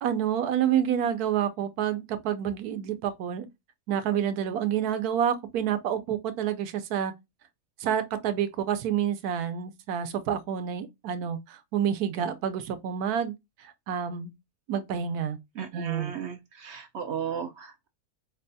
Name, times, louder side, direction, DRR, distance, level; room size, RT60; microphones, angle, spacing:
voice 1, 0.0-3.5 3.9-7.1 7.8-13.3 13.6-14.3 14.7-15.4 15.7-16.1, right 9 dB, 85° right, 1.1 m, -28 dB
voice 2, 15.6-17.9, right 7 dB, 70° right, 0.7 m, -35 dB
4.8 x 2.2 x 2.6 m
omnidirectional pair, 1.6 m